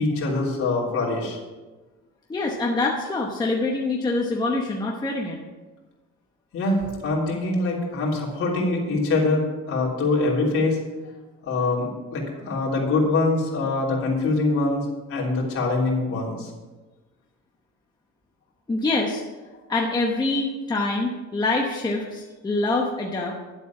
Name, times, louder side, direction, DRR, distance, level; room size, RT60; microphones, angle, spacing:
voice 1, 0.0-1.4 6.5-10.8 11.4-16.5, left 2 dB, 50° left, -3 dB, 3.4 m, -24 dB
voice 2, 2.3-5.4 18.7-19.2 19.7-23.4, left 2 dB, 15° left, -1 dB, 0.9 m, -25 dB
11.5 x 8.0 x 5.9 m, 1.2 s
cardioid pair, 165°, 30 cm